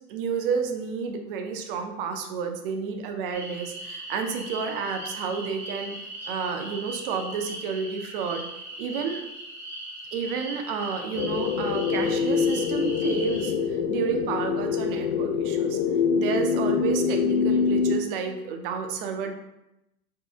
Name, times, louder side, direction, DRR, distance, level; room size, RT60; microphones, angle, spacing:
voice 1, 0.1-6.0 6.3-8.4 8.8-9.2 10.1-15.8 16.1-19.3, right 6 dB, 40° right, 5 dB, 0.5 m, -30 dB
sound 1, 3.3-13.5, right 1 dB, 5° right, 0.6 m, -39 dB
sound 2, 11.1-18.0, left 6 dB, 55° left, 0.5 m, -25 dB
4.3 x 2.6 x 3.4 m, 0.90 s
hypercardioid pair, 140°, 46 cm